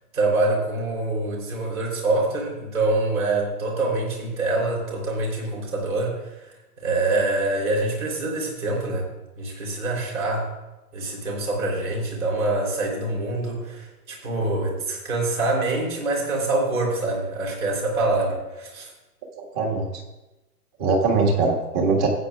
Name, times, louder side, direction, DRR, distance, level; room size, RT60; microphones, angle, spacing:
voice 1, 0.1-9.1 9.4-10.5 10.9-18.9, right 2 dB, 60° right, -2 dB, 3.7 m, -25 dB
voice 2, 19.4-19.9 20.8-22.1, right 3 dB, 30° right, 0 dB, 1.9 m, -21 dB
15.5 x 8.8 x 2.4 m, 1.0 s
figure-of-eight pair, 125°, 47 cm